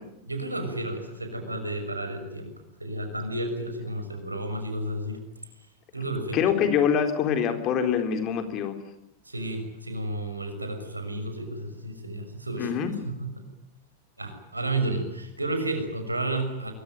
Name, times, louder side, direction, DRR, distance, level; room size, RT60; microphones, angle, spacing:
voice 1, 0.3-2.5 2.8-5.2 5.9-6.5 9.2-12.7 13.0-13.4 14.2-16.7, right 2 dB, 85° right, 6 dB, 6.2 m, -32 dB
voice 2, 6.3-8.8 12.6-12.9, left 8 dB, 35° left, 7 dB, 4.0 m, -24 dB
24.5 x 23.5 x 9.1 m, 0.81 s
figure-of-eight pair, 90°, 0 cm